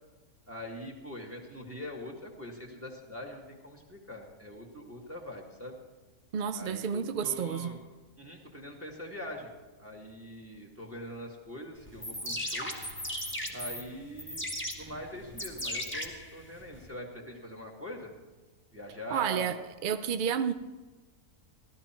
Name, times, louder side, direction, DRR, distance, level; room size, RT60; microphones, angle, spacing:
voice 1, 0.5-5.8 6.5-7.8 8.2-9.5 9.8-12.7 13.5-14.5 14.8-18.1 18.7-19.6, left 1 dB, 10° right, 1.9 m, -43 dB
voice 2, 6.3-7.7 19.1-19.6 19.8-20.5, right 8 dB, 70° right, 0.4 m, -30 dB
sound 1, 11.9-16.9, left 1 dB, 10° left, 1.5 m, -37 dB
16.0 x 12.5 x 4.4 m
omnidirectional pair, 1.6 m